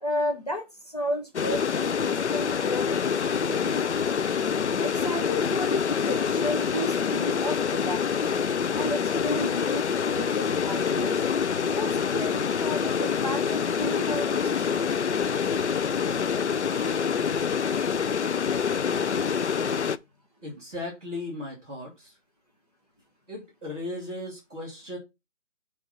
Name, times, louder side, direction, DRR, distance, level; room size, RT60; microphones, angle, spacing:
voice 1, 0.0-3.8 4.8-8.4 8.7-11.2 11.6-14.7, left 1 dB, 30° left, 1.0 m, -33 dB
sound 1, 1.3-20.0, left 6 dB, 65° left, 0.5 m, -26 dB
voice 2, 20.4-22.1 23.3-25.0, left 2 dB, 5° right, 1.3 m, -36 dB
6.3 x 3.5 x 5.6 m
hypercardioid pair, 180°, 37 cm